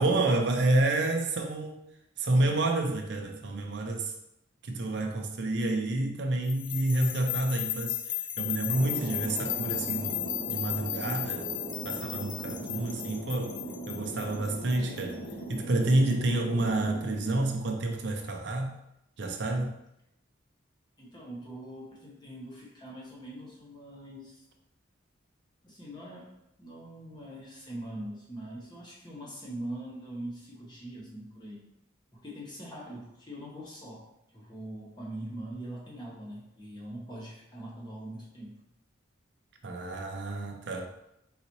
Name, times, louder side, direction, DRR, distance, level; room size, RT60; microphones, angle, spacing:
voice 1, 0.0-1.7 2.2-4.1 4.6-11.5 11.8-13.6 13.9-15.2 15.5-18.8 19.2-19.8 39.6-40.9, right 2 dB, 55° right, 3 dB, 0.5 m, -29 dB
sound 1, 6.5-15.5, left 12 dB, 70° left, 0.4 m, -35 dB
Thunder, 8.7-18.0, right 1 dB, 90° left, 1.5 m, -40 dB
voice 2, 12.7-13.3 21.0-24.4 25.6-26.3 26.6-31.7 32.1-34.0 34.3-38.6, right 1 dB, 20° left, -4 dB, 1.0 m, -42 dB
4.0 x 3.9 x 3.0 m, 0.82 s
head